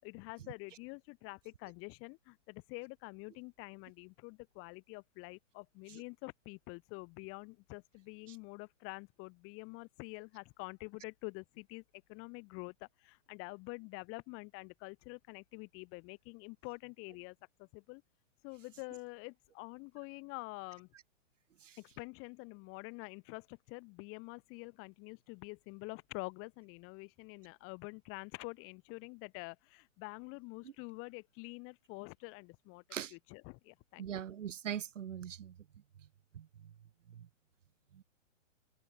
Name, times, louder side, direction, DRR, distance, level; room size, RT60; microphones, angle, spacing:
voice 1, 0.0-18.0 18.4-20.9 21.8-32.8 33.1-34.2, left 28 dB, 35° left, 6.5 m, -47 dB
voice 2, 34.0-35.5 36.3-36.5 38.0-38.1, right 9 dB, 75° right, 2.0 m, -41 dB
hypercardioid pair, 135°, 38 cm